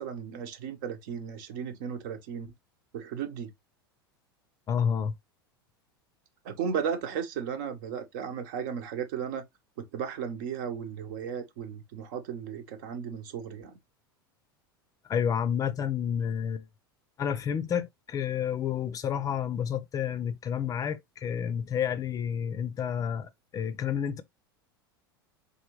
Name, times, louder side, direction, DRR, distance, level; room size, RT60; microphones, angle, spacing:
voice 1, 0.0-2.5 2.9-3.5 6.4-9.4 9.8-13.8, right 7 dB, 55° right, 1.0 m, -35 dB
voice 2, 4.7-5.1 15.1-16.6 17.2-24.2, left 8 dB, 30° left, 0.5 m, -30 dB
4.0 x 3.4 x 3.0 m
figure-of-eight pair, 85°, 12 cm